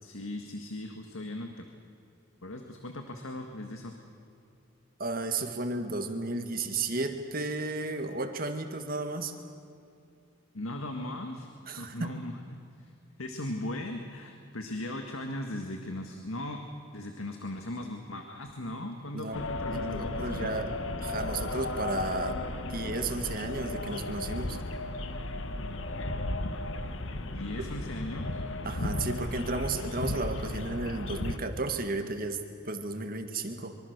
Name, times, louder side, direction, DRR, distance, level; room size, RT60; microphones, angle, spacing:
voice 1, 0.0-1.7 2.4-3.9 10.5-11.5 11.8-12.9 13.2-16.6 16.9-20.5 27.3-28.4, left 1 dB, 90° left, 4 dB, 1.8 m, -38 dB
voice 2, 5.0-9.4 11.7-12.1 19.1-19.4 19.7-22.4 22.7-24.6 28.7-33.8, right 3 dB, 45° right, 6 dB, 1.8 m, -33 dB
sound 1, 19.3-31.4, left 2 dB, 70° left, 1.4 m, -35 dB
25.5 x 24.0 x 6.7 m, 2.6 s
head